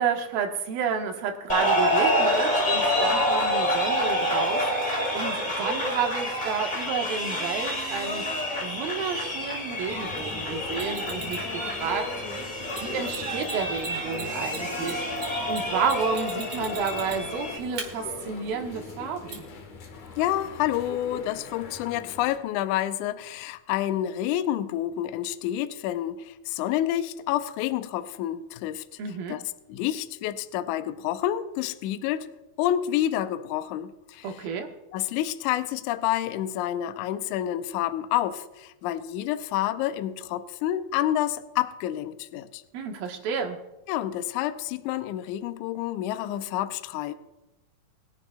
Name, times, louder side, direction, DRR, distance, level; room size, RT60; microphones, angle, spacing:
voice 1, 0.0-8.3 8.6-12.1 12.8-15.0 15.5-19.5 29.0-29.4 34.2-34.7 42.7-43.6, right 6 dB, 85° right, 3 dB, 3.0 m, -31 dB
sound 1, 1.5-17.6, equal, 25° left, 1.0 m, -28 dB
sound 2, 9.9-22.4, left 4 dB, 65° left, 2.8 m, -40 dB
Mechanisms, 10.7-11.5 12.7-12.8 13.1-13.2 13.4-13.5 13.8-17.4 17.8-17.9 19.3-19.4, right 4 dB, 55° right, 3.6 m, -38 dB
voice 2, 20.2-28.8 29.3-29.4 29.7-32.3 32.6-34.3 34.9-42.6 43.9-47.1, left 12 dB, 85° left, 10 dB, 1.8 m, -28 dB
22.5 x 10.5 x 2.3 m, 0.99 s
omnidirectional pair, 4.1 m